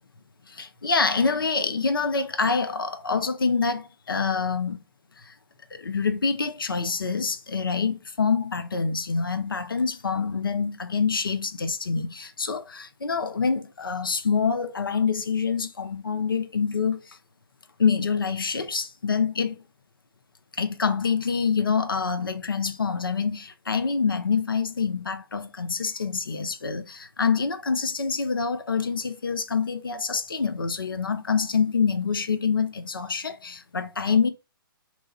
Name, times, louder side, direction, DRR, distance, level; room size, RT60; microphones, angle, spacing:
voice 1, 0.5-4.8 5.2-5.3 5.7-17.2 17.8-19.6 20.6-34.3, left 5 dB, 70° left, 0.5 m, -26 dB
3.0 x 2.2 x 4.0 m
figure-of-eight pair, 130°, 12 cm